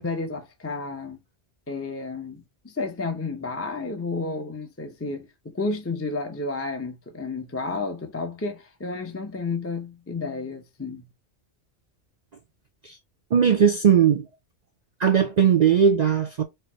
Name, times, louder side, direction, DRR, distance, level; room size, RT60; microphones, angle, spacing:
voice 1, 0.0-1.2 1.7-11.1, left 3 dB, 15° left, 0.6 m, -31 dB
voice 2, 13.3-14.3 15.0-16.4, right 8 dB, 50° right, 0.5 m, -18 dB
4.4 x 2.6 x 4.4 m
omnidirectional pair, 1.1 m